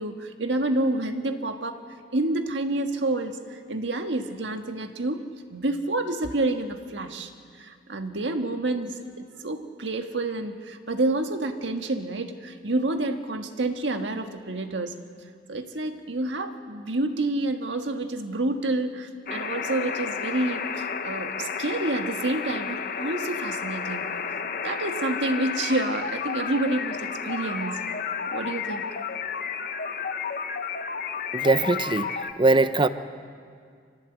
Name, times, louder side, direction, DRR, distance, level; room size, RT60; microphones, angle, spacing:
voice 1, 0.0-1.8 2.1-5.2 5.5-7.3 7.6-15.0 15.5-24.1 24.6-27.9 28.3-28.8, right 2 dB, 85° right, 6 dB, 1.6 m, -28 dB
sound 1, 19.3-32.3, left 6 dB, 55° left, 1.0 m, -32 dB
voice 2, 31.3-32.9, right 2 dB, 25° right, 12 dB, 0.7 m, -21 dB
25.0 x 17.0 x 8.2 m, 2.1 s
head